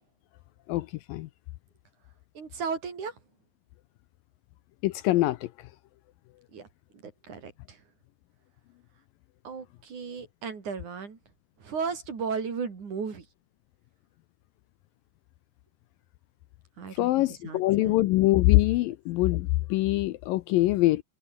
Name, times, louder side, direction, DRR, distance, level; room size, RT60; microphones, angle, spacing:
voice 1, 0.7-1.3 4.8-5.5 17.0-21.0, left 18 dB, 80° left, 2.2 m, -24 dB
voice 2, 2.3-3.1 6.5-6.7 6.9-7.8 9.4-11.2 11.6-13.2 16.8-18.0, right 5 dB, 50° right, 5.1 m, -35 dB
omnidirectional pair, 4.4 m